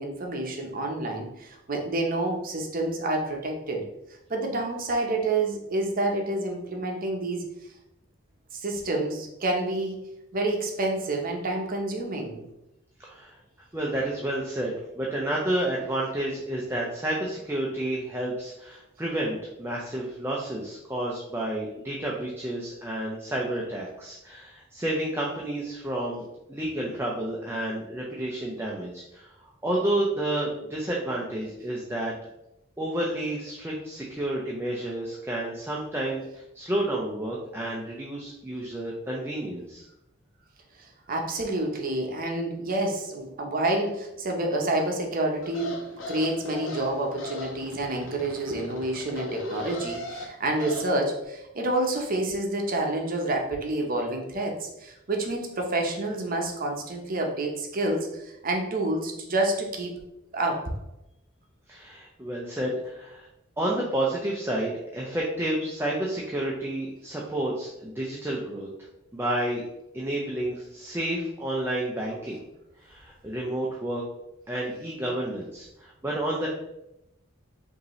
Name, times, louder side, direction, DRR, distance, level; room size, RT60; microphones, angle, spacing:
voice 1, 0.0-3.8 4.3-7.5 8.5-10.0 10.3-12.4 41.1-60.0 60.3-60.7, right 2 dB, 45° right, 1 dB, 0.8 m, -28 dB
voice 2, 13.0-13.4 13.7-26.2 26.5-29.3 29.6-32.1 32.8-39.8 61.7-63.3 63.6-68.7 69.1-69.6 69.9-72.4 72.8-74.0 74.5-76.5, right 1 dB, 10° right, -4 dB, 0.5 m, -30 dB
sound 1, 45.4-50.9, left 2 dB, 75° left, 0.9 m, -38 dB
5.1 x 2.7 x 3.1 m, 0.87 s
head